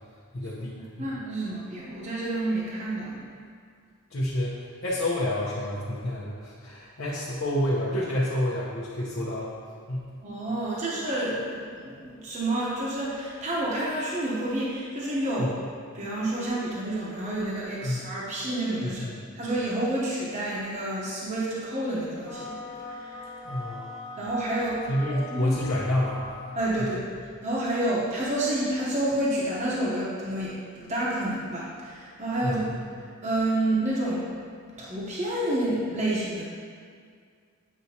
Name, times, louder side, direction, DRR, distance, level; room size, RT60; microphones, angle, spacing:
voice 1, 0.3-1.1 4.1-9.5 9.9-10.1 15.4-15.5 17.8-18.0 18.8-19.2 23.4-23.9 24.9-26.2 26.8-26.9 32.4-32.8, left 1 dB, 75° left, -6 dB, 0.9 m, -29 dB
voice 2, 1.0-3.3 10.2-15.6 15.9-19.1 19.4-22.5 22.9-23.2 24.2-25.6 26.6-27.0 27.4-34.3 34.8-36.4, right 1 dB, 35° right, -6 dB, 0.9 m, -29 dB
sound 1, 22.2-26.9, left 2 dB, 20° left, 0.6 m, -41 dB
8.3 x 4.7 x 2.8 m, 2.1 s
head